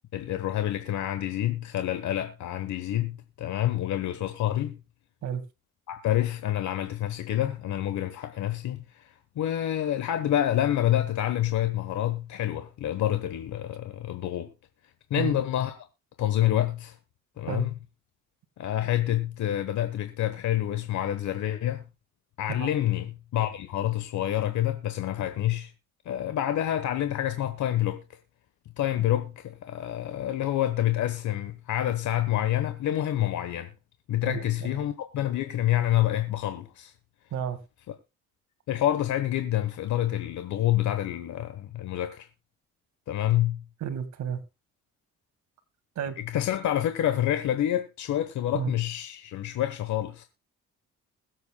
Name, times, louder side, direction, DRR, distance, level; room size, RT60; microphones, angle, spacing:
voice 1, 0.1-4.8 5.9-14.5 15.1-15.8 16.2-17.0 17.4-17.7 18.6-21.8 22.4-25.7 26.0-28.0 28.8-33.7 34.1-36.9 38.7-42.3 43.1-43.6 46.3-50.2, left 12 dB, 75° left, 1.2 m, -27 dB
voice 2, 34.3-34.8 37.3-37.6 43.8-44.4 46.0-46.2 48.5-48.7, right 8 dB, 70° right, 1.9 m, -31 dB
21.5 x 8.1 x 2.3 m
cardioid pair, 90°, 30 cm